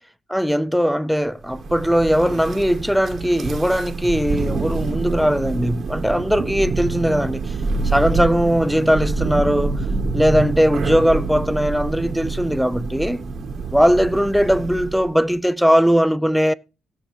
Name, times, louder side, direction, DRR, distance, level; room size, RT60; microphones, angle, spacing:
voice 1, 0.3-7.5 7.8-9.8 10.1-13.3 13.7-16.5, equal, ahead, 0.4 m, -19 dB
Thunder, 1.5-15.1, right 4 dB, 50° right, 1.4 m, -26 dB
16.5 x 6.5 x 3.0 m
cardioid pair, 95°, 0 cm